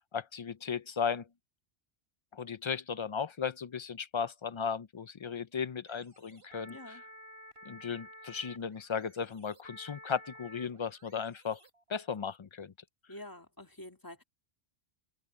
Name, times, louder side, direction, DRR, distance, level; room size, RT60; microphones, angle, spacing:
voice 1, 0.1-1.3 2.3-7.0 7.7-11.6 11.9-12.7, left 6 dB, 55° left, 0.3 m, -36 dB
sound 1, 5.9-12.1, equal, 60° right, 3.4 m, -53 dB
voice 2, 6.7-7.0 13.1-14.2, left 1 dB, 20° left, 1.8 m, -47 dB
omnidirectional pair, 1.2 m